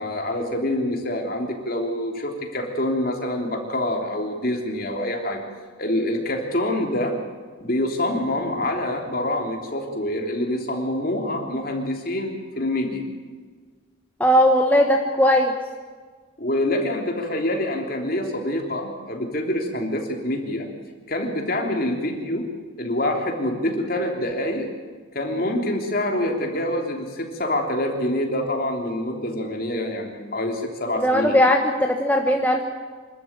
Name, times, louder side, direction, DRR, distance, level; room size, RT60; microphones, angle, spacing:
voice 1, 0.0-5.4 5.8-7.2 7.6-13.0 16.4-20.7 21.1-22.5 22.8-24.7 25.1-31.4, left 1 dB, 45° left, 2 dB, 3.3 m, -26 dB
voice 2, 14.2-15.5 31.0-32.6, equal, 10° left, 2 dB, 1.2 m, -18 dB
25.5 x 13.0 x 8.9 m, 1.5 s
head